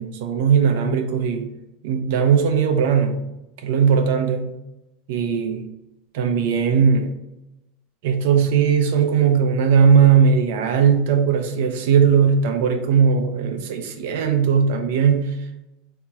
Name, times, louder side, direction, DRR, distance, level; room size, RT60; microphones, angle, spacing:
voice 1, 0.0-1.5 1.8-3.2 3.6-4.5 5.1-5.7 6.1-7.1 8.0-15.4, right 6 dB, 60° right, 6 dB, 0.7 m, -18 dB
3.5 x 2.9 x 4.2 m, 0.94 s
supercardioid pair, 170°, 0 cm